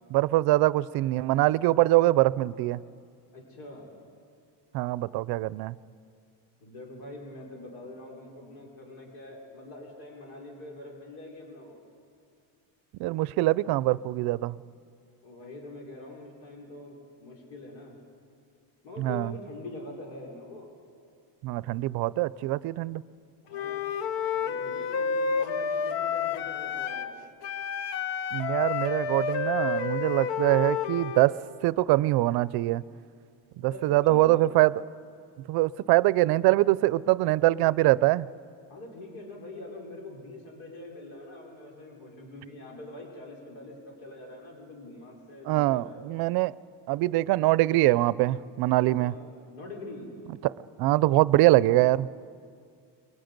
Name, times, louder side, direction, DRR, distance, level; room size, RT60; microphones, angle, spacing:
voice 1, 0.1-2.8 4.7-5.8 13.0-14.6 19.0-19.3 21.4-23.0 28.3-31.4 31.6-32.8 33.6-34.7 35.5-38.3 45.5-46.6 46.9-49.1 50.4-50.5 50.8-52.1, right 17 dB, 60° right, 19 dB, 0.5 m, -23 dB
voice 2, 3.3-3.9 6.6-11.8 15.2-18.0 18.8-20.7 23.4-24.0 24.3-27.3 33.6-34.5 38.7-46.0 49.0-50.1, left 2 dB, 85° left, -1 dB, 4.8 m, -44 dB
Wind instrument woodwind instrument, 23.5-27.1 27.4-31.3, left 6 dB, 70° left, 1.1 m, -30 dB
29.5 x 22.5 x 5.3 m, 2.3 s
cardioid pair, 160°, 44 cm